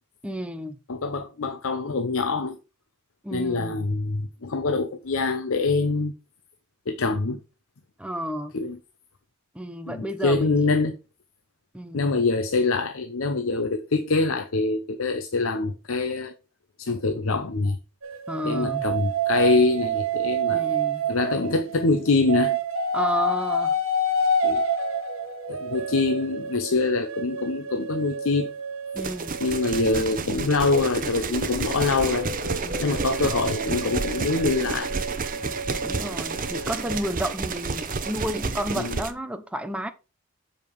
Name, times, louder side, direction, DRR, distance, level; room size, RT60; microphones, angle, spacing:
voice 1, 0.2-0.8 3.2-3.9 8.0-8.6 9.5-10.7 11.7-12.1 18.3-18.9 20.5-21.1 22.9-23.7 28.9-29.4 32.6-33.1 35.8-39.9, equal, 5° right, 0.7 m, -31 dB
voice 2, 0.9-2.6 3.3-6.1 6.9-7.4 8.5-8.8 9.9-11.0 11.9-16.3 16.8-17.8 18.4-20.8 21.1-22.6 24.4-24.6 25.5-28.5 29.4-32.3 32.8-34.9 38.8-39.0, left 3 dB, 65° left, 0.7 m, -24 dB
sound 1, 18.0-21.9 22.3-30.4 31.1-37.0, right 2 dB, 65° right, 1.2 m, -29 dB
sound 2, 29.0-39.1, right 4 dB, 40° right, 0.8 m, -30 dB
7.2 x 5.1 x 4.6 m
head